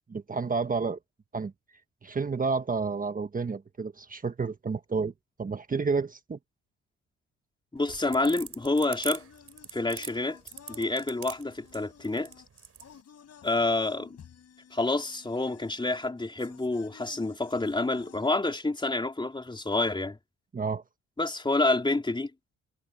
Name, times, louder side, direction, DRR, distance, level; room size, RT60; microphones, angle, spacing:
voice 1, 0.1-1.0 1.3-1.5 2.0-5.1 5.4-6.4 20.5-20.8, right 4 dB, 30° right, 1.3 m, -30 dB
voice 2, 7.7-9.2 9.7-10.4 10.7-12.3 13.4-14.2 14.7-20.2 21.2-22.3, left 2 dB, 15° left, 3.2 m, -28 dB
sound 1, 7.8-12.9, right 7 dB, 50° right, 5.7 m, -41 dB
sound 2, 8.6-18.3, left 8 dB, 55° left, 6.2 m, -54 dB
cardioid pair, 90°, 30 cm